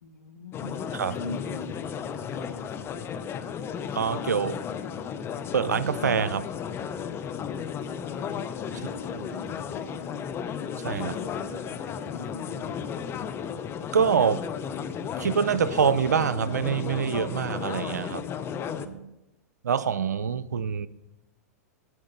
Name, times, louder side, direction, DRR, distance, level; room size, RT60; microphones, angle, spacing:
voice 1, 0.0-1.7 2.0-3.0 7.7-8.4 8.7-10.3 11.0-12.9, left 3 dB, 85° left, 1.1 m, -43 dB
sound 1, 0.5-18.9, left 7 dB, 25° left, 0.8 m, -34 dB
voice 2, 3.9-4.6 5.5-6.5 10.8-11.2 13.9-14.5 15.2-18.3 18.8-19.1 19.6-20.9, right 7 dB, 90° right, 0.5 m, -25 dB
9.6 x 8.6 x 5.4 m
hypercardioid pair, 110°, 9 cm